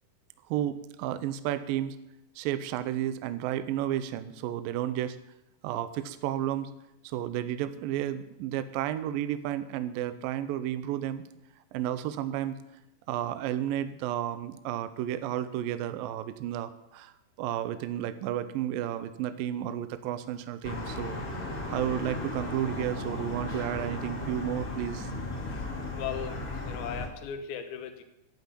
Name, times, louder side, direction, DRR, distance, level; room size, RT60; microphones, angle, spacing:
voice 1, 0.5-2.0 2.4-5.2 5.6-6.7 7.0-11.2 11.7-12.6 13.1-17.1 17.4-21.2 21.5-25.1, right 11 dB, 75° right, 12 dB, 2.2 m, -32 dB
sound 1, 20.6-27.1, left 2 dB, 30° left, 2.1 m, -35 dB
voice 2, 25.9-28.0, left 8 dB, 75° left, 8 dB, 3.0 m, -37 dB
12.0 x 8.7 x 8.3 m, 0.88 s
omnidirectional pair, 4.5 m